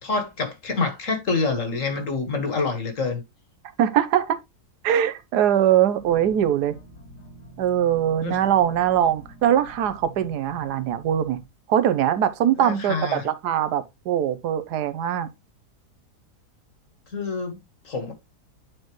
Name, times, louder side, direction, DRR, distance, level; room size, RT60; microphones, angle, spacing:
voice 1, 0.0-3.2 8.2-8.4 12.6-13.3 17.1-17.6 17.8-18.1, left 4 dB, 50° left, 1.8 m, -27 dB
voice 2, 3.8-4.4 4.8-6.8 7.6-11.4 11.7-15.3, right 10 dB, 80° right, 1.3 m, -22 dB
sound 1, 6.0-11.5, right 1 dB, 80° left, 2.6 m, -46 dB
9.4 x 4.3 x 3.0 m
omnidirectional pair, 1.7 m